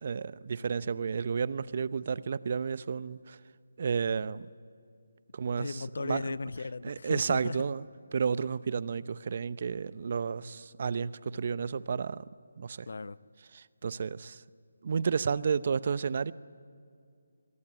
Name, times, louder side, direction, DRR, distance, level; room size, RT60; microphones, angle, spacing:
voice 1, 0.0-3.4 3.8-4.5 5.3-6.4 6.8-7.8 8.1-12.2 12.6-12.9 13.5-14.4 14.8-16.3, right 6 dB, 45° right, 0.7 m, -31 dB
voice 2, 5.6-7.6 12.9-13.2, left 3 dB, 60° left, 0.7 m, -36 dB
26.5 x 23.0 x 9.8 m
figure-of-eight pair, 155°, 0 cm